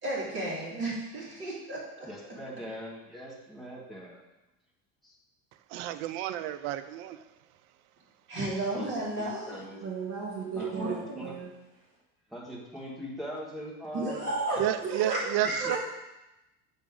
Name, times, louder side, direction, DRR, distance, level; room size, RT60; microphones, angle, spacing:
voice 1, 0.0-2.1 8.3-9.6 10.5-11.2 13.9-14.6 15.1-15.6, right 1 dB, 30° right, -6 dB, 2.5 m, -33 dB
voice 2, 2.0-4.2 5.0-5.1 8.7-9.8 10.5-11.4 12.3-14.3 15.6-15.8, equal, ahead, -5 dB, 1.4 m, -41 dB
voice 3, 5.7-7.2 14.6-15.8, right 12 dB, 75° right, 11 dB, 0.6 m, -31 dB
voice 4, 9.8-11.5 14.8-15.2 15.6-15.8, right 6 dB, 60° right, -4 dB, 2.4 m, -35 dB
7.4 x 6.1 x 3.7 m, 0.99 s
cardioid pair, 160°, 41 cm